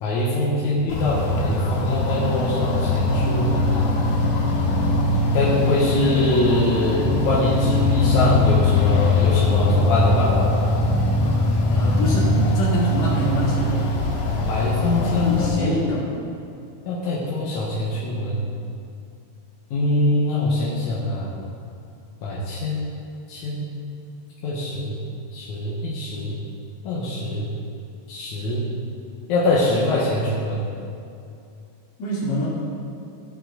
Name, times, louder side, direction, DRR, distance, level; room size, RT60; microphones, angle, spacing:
voice 1, 0.0-3.9 5.3-10.3 14.5-15.7 16.9-18.4 19.7-21.3 22.2-22.9 23.3-23.7 24.4-24.9 25.3-26.4 26.8-27.5 28.1-28.6 29.3-30.7, left 1 dB, 65° left, -6 dB, 2.1 m, -23 dB
sound 1, 0.9-15.5, left 2 dB, 80° left, 3.4 m, -21 dB
voice 2, 11.7-13.9 15.0-16.1 32.0-32.5, left 1 dB, 45° left, -7 dB, 3.6 m, -25 dB
17.0 x 7.5 x 3.9 m, 2.6 s
omnidirectional pair, 4.7 m